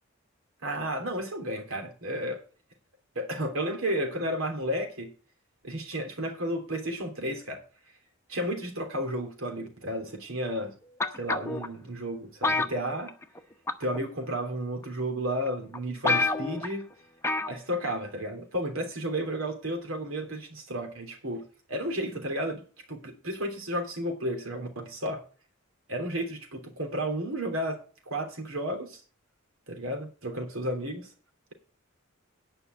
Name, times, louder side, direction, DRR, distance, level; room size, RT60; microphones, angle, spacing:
voice 1, 0.6-2.4 3.1-5.1 5.6-7.6 8.3-10.7 11.1-13.1 13.8-16.9 17.5-22.6 22.9-25.2 25.9-29.0 29.7-31.1, equal, 85° right, 3.3 m, -32 dB
sound 1, 11.0-11.7 12.4-13.4 13.7-14.0 14.8-14.9 15.5-15.6 15.7-15.8 16.0-16.7 17.2-17.6 17.9-18.0, left 3 dB, 15° left, 0.8 m, -27 dB
9.9 x 5.6 x 8.0 m
head